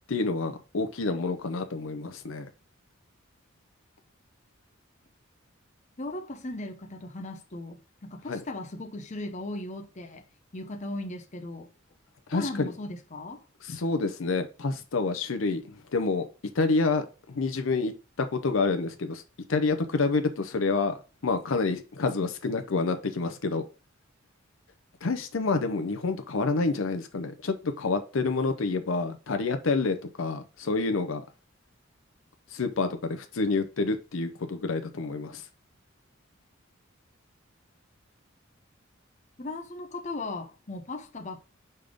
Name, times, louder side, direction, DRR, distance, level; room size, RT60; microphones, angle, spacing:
voice 1, 0.1-2.5 8.3-8.4 12.3-12.7 13.6-16.3 16.5-19.2 19.5-21.0 21.2-23.6 25.0-31.2 32.5-35.4, left 3 dB, 75° left, 0.7 m, -28 dB
voice 2, 6.0-10.2 10.5-11.7 12.3-13.4 39.4-41.4, left 2 dB, 35° left, 0.8 m, -37 dB
5.4 x 3.5 x 5.1 m
head